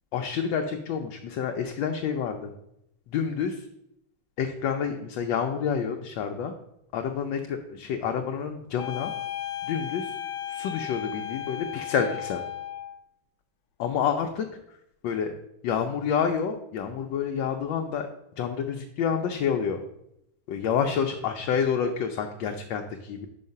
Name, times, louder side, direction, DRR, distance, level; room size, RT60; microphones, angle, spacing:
voice 1, 0.1-2.5 3.1-3.5 4.4-6.5 6.9-9.1 9.7-10.1 10.5-12.4 13.8-14.5 15.0-15.3 15.6-18.1 18.4-19.8 20.5-23.3, left 7 dB, 75° left, 4 dB, 1.3 m, -28 dB
sound 1, 8.8-13.0, left 11 dB, 90° left, 1.5 m, -35 dB
5.7 x 4.7 x 5.4 m, 0.81 s
omnidirectional pair, 2.2 m